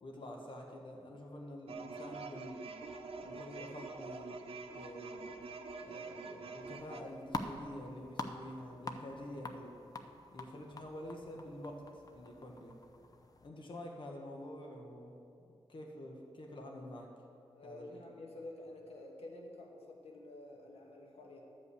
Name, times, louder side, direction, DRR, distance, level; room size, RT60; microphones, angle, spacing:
voice 1, 0.0-2.7 3.2-4.4 4.7-5.3 5.8-9.7 10.3-12.7 13.4-15.1 15.4-17.1 17.6-17.8, left 1 dB, 55° left, 0 dB, 1.3 m, -47 dB
sound 1, 1.7-7.0, right 4 dB, 75° right, 0.7 m, -46 dB
sound 2, 6.7-13.5, left 2 dB, 40° left, 0.6 m, -46 dB
voice 2, 17.5-21.4, left 2 dB, 85° left, 0 dB, 1.3 m, -50 dB
12.0 x 5.4 x 8.3 m, 2.6 s
wide cardioid pair, 135°, 10 cm